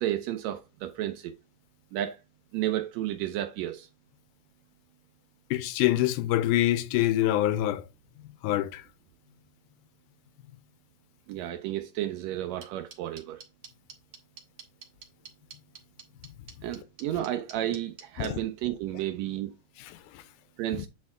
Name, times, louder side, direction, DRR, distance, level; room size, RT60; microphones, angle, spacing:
voice 1, 0.0-1.3 1.9-2.2 2.5-3.9 11.3-13.4 16.6-19.5 20.6-20.9, right 13 dB, 85° right, 1.5 m, -32 dB
voice 2, 5.5-7.9 8.4-8.8 18.2-18.4 20.1-20.2, left 14 dB, 90° left, 2.1 m, -25 dB
sound 1, 12.6-18.3, right 6 dB, 55° right, 2.0 m, -46 dB
8.7 x 4.2 x 3.6 m
omnidirectional pair, 3.5 m